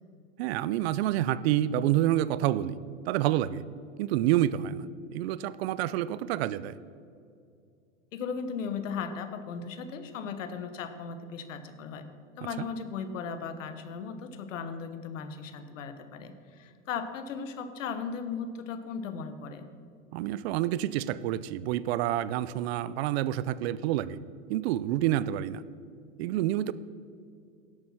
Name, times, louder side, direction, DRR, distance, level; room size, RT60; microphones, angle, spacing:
voice 1, 0.4-2.8 3.1-3.6 4.0-4.9 5.1-6.7 12.6-12.7 20.1-24.2 24.5-25.6 26.2-26.7, right 13 dB, 55° right, 18 dB, 0.5 m, -28 dB
voice 2, 8.1-12.1 12.4-19.6, left 6 dB, 80° left, 10 dB, 1.2 m, -37 dB
11.5 x 8.0 x 5.9 m, 2.4 s
hypercardioid pair, 125°, 37 cm